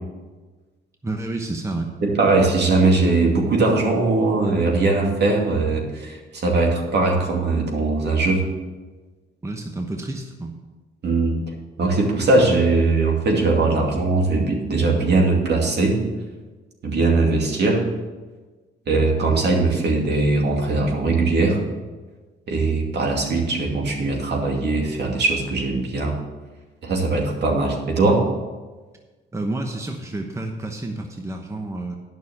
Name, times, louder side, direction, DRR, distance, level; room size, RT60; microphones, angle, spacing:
voice 1, 1.0-1.9 9.4-10.5 29.3-32.0, right 2 dB, 15° right, 3 dB, 1.0 m, -29 dB
voice 2, 2.0-8.5 11.0-11.4 11.8-16.0 16.8-17.9 18.9-21.6 22.5-26.1 26.8-28.3, right 3 dB, 55° right, 0 dB, 2.5 m, -20 dB
9.5 x 6.3 x 7.2 m, 1.3 s
cardioid pair, 90°, 20 cm